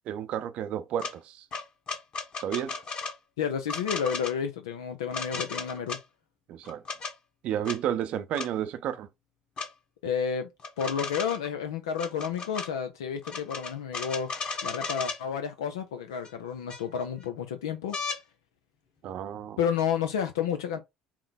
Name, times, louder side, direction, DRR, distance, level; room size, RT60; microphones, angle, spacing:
voice 1, 0.1-1.5 2.4-2.7 5.3-5.4 6.5-6.8 7.4-9.1 19.0-19.6, right 10 dB, 60° right, 0.6 m, -32 dB
sound 1, 1.0-1.1 1.5-3.2 3.7-4.3 5.1-6.0 6.7-7.1 7.6-7.8 8.3-8.5 9.6-9.7 10.6-11.5 11.9-12.7 13.2-15.2 16.2-16.3 16.7-17.2 17.9-18.2 19.8-19.9, left 4 dB, 45° left, 1.2 m, -35 dB
voice 2, 3.4-6.0 10.0-10.5 10.8-14.3 14.6-18.0 19.6-20.8, left 7 dB, 90° left, 0.5 m, -31 dB
4.4 x 2.1 x 3.9 m
hypercardioid pair, 80°, 2 cm